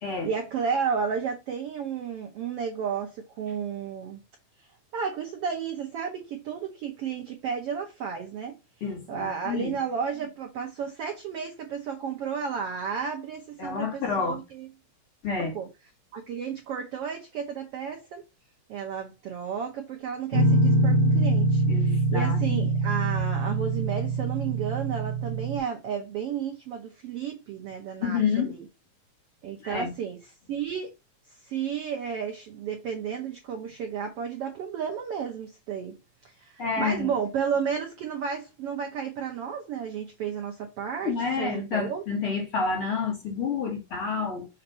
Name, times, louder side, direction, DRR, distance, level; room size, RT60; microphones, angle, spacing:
voice 1, 0.2-4.2 4.9-8.5 9.1-14.7 15.4-15.7 16.1-18.2 18.7-28.6 29.4-30.2 30.5-30.9 31.5-35.9 36.4-42.0, right 7 dB, 75° right, 1.4 m, -32 dB
voice 2, 8.8-9.7 13.6-14.4 15.2-15.5 21.7-22.7 28.0-28.6 29.6-29.9 36.6-37.1 41.0-44.5, left 5 dB, 45° left, 2.1 m, -29 dB
Guitar, 20.3-25.6, right 2 dB, 25° right, 1.1 m, -24 dB
6.5 x 2.7 x 5.5 m
omnidirectional pair, 4.0 m